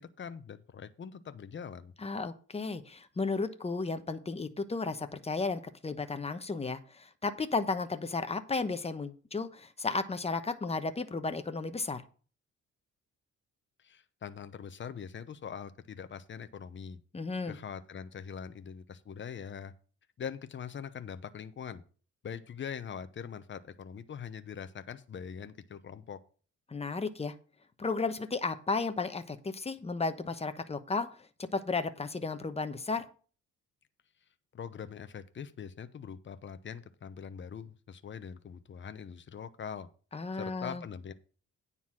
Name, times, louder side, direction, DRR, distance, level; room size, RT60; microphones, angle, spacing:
voice 1, 0.0-1.9 13.8-17.0 17.5-19.7 20.2-21.8 22.2-26.2 34.5-39.9 40.3-41.1, left 7 dB, 40° left, 11 dB, 0.9 m, -43 dB
voice 2, 2.0-12.0 17.1-17.6 26.7-27.3 27.8-31.1 31.4-33.0 40.1-40.8, left 3 dB, 20° left, 9 dB, 1.0 m, -34 dB
9.5 x 4.1 x 7.5 m, 0.40 s
cardioid pair, 90°, 30 cm